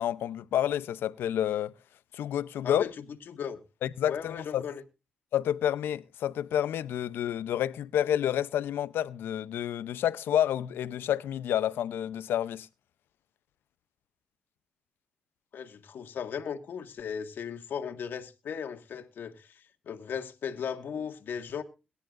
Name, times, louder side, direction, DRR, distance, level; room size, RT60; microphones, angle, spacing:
voice 1, 0.0-1.7 2.1-2.8 3.8-4.6 5.3-12.7, left 10 dB, 85° left, 0.6 m, -29 dB
voice 2, 2.6-3.6 4.1-4.8 15.5-21.6, left 7 dB, 70° left, 1.8 m, -37 dB
22.0 x 10.0 x 2.5 m
cardioid pair, 80°, 4 cm